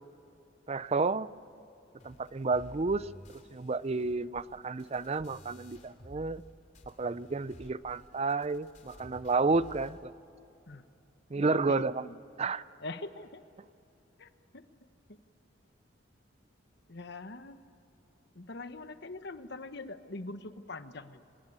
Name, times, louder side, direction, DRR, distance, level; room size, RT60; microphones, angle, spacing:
voice 1, 0.7-1.3 2.0-3.1 3.5-6.4 6.9-10.1 11.3-12.1 12.4-12.6, right 3 dB, 35° right, 17 dB, 0.5 m, -31 dB
sound 1, 2.0-6.5 6.7-10.0, equal, 40° left, 2.8 m, -54 dB
voice 2, 11.3-11.8 12.8-13.4 14.2-14.3 16.9-17.6 18.3-21.2, left 2 dB, 60° left, 10 dB, 1.2 m, -42 dB
25.5 x 20.0 x 9.7 m, 2.8 s
head